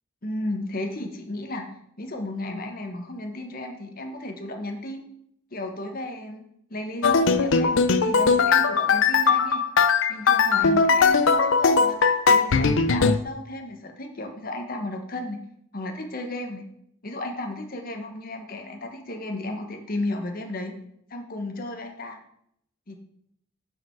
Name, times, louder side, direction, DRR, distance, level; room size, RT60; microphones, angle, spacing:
voice 1, 0.2-5.1 5.5-6.4 6.7-9.6 10.1-15.4 15.7-16.6 17.0-20.7 21.1-22.2 22.9-23.0, left 1 dB, 45° left, 4 dB, 1.2 m, -34 dB
sound 1, 7.0-13.2, left 5 dB, 65° left, 0.6 m, -19 dB
12.0 x 5.0 x 4.6 m, 0.72 s
head